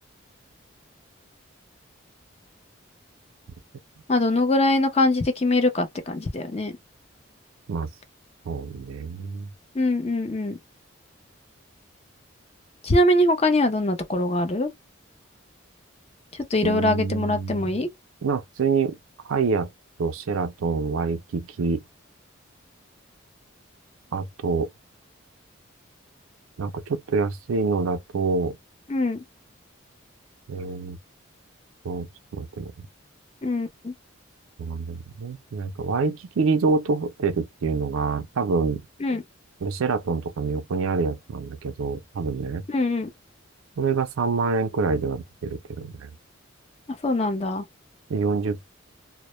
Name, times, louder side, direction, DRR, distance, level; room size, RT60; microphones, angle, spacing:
voice 1, 4.1-6.7 9.7-10.6 12.8-14.7 16.3-17.9 28.9-29.2 33.4-33.9 39.0-39.2 42.7-43.1 47.0-47.6, left 1 dB, 30° left, 0.5 m, -23 dB
voice 2, 8.5-9.5 16.6-17.7 18.2-19.0 19.2-19.7 20.0-21.8 24.1-24.7 26.6-28.6 30.5-31.0 31.8-32.1 32.3-32.7 34.6-38.8 39.6-42.6 43.8-46.1 48.1-48.7, right 4 dB, 85° right, 0.4 m, -26 dB
2.0 x 2.0 x 2.9 m
head